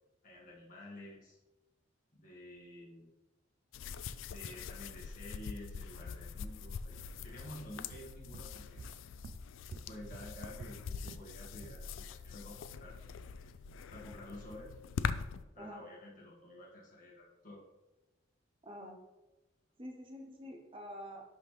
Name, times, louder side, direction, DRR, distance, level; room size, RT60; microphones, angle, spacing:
voice 1, 0.2-1.4 2.1-3.1 4.3-9.0 9.7-13.0 13.4-13.5 13.9-14.7 15.5-17.6, left 1 dB, 40° left, -4 dB, 1.8 m, -50 dB
sound 1, 3.7-15.4, left 6 dB, 85° left, 0.3 m, -43 dB
sound 2, 7.4-11.3 11.6-11.9, right 3 dB, 55° right, 0.4 m, -51 dB
voice 2, 18.6-19.0 19.8-21.2, equal, 25° right, 2 dB, 0.7 m, -47 dB
11.0 x 3.7 x 3.2 m, 1.1 s
head